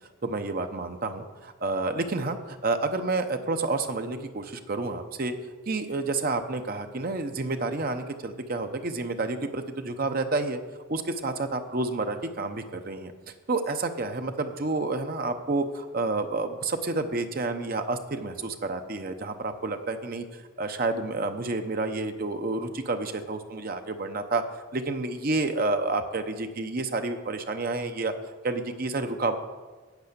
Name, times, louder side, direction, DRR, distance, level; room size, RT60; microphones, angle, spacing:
voice 1, 0.2-5.3 5.7-10.6 10.9-13.1 13.5-24.4 24.7-28.1 28.4-29.4, right 3 dB, 45° right, 7 dB, 0.7 m, -29 dB
8.5 x 8.2 x 6.7 m, 1.4 s
head